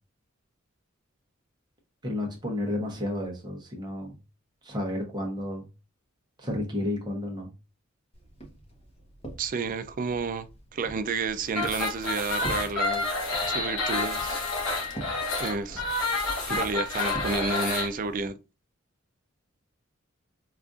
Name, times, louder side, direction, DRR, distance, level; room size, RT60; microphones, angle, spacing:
voice 1, 2.0-4.1 4.6-5.7 6.4-7.5, left 1 dB, 20° right, 0.8 m, -31 dB
Walk footsteps, 8.1-17.5, right 1 dB, 30° left, 0.9 m, -44 dB
voice 2, 9.4-13.1 13.5-14.4 15.4-15.8 16.5-18.4, right 4 dB, 40° right, 0.4 m, -31 dB
sound 1, 11.5-17.9, left 3 dB, 85° left, 1.1 m, -29 dB
4.9 x 2.4 x 2.4 m
head